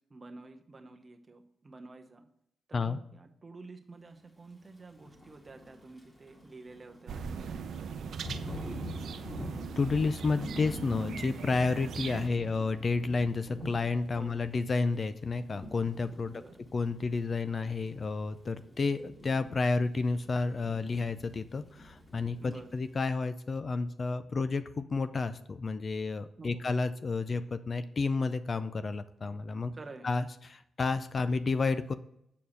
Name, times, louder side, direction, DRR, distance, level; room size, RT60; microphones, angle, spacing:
voice 1, 0.1-2.2 2.7-8.1 14.1-14.4 16.3-16.6 22.4-22.7 26.4-26.7 29.7-30.1, right 3 dB, 30° right, 5 dB, 0.9 m, -49 dB
Thunder / Rain, 4.9-23.0, left 1 dB, 15° left, 2.0 m, -47 dB
sound 1, 7.1-12.3, right 6 dB, 70° right, 0.6 m, -40 dB
voice 2, 9.8-16.3 16.7-29.7 30.0-31.9, left 4 dB, 40° left, 12 dB, 0.4 m, -31 dB
7.2 x 4.6 x 6.4 m, 0.74 s
cardioid pair, 105°, 0 cm